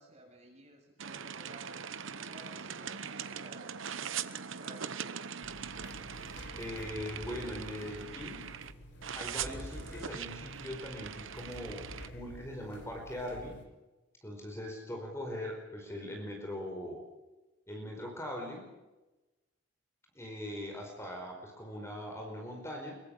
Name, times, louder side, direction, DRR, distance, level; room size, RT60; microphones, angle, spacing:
voice 1, 0.0-4.8, right 1 dB, 35° right, 2 dB, 7.1 m, -55 dB
sound 1, 1.0-8.7 9.0-12.1, right 7 dB, 70° right, 1.0 m, -41 dB
sound 2, 5.4-13.6, equal, 55° left, 5.5 m, -49 dB
voice 2, 6.6-8.5 9.1-13.6 14.2-17.0 17.7-18.7 20.1-23.0, left 1 dB, 15° left, 2 dB, 4.9 m, -41 dB
24.5 x 23.0 x 6.6 m, 1.1 s
head